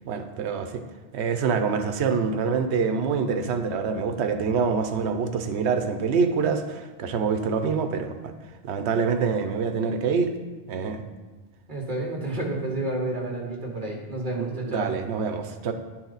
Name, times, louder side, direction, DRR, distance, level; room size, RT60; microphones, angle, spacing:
voice 1, 0.1-0.8 1.1-8.3 8.6-10.3 10.7-11.0 14.4-15.7, right 5 dB, 80° right, 8 dB, 0.9 m, -26 dB
voice 2, 11.7-14.9, right 2 dB, 45° right, 0 dB, 1.5 m, -30 dB
11.0 x 4.4 x 4.0 m, 1.3 s
omnidirectional pair, 1.1 m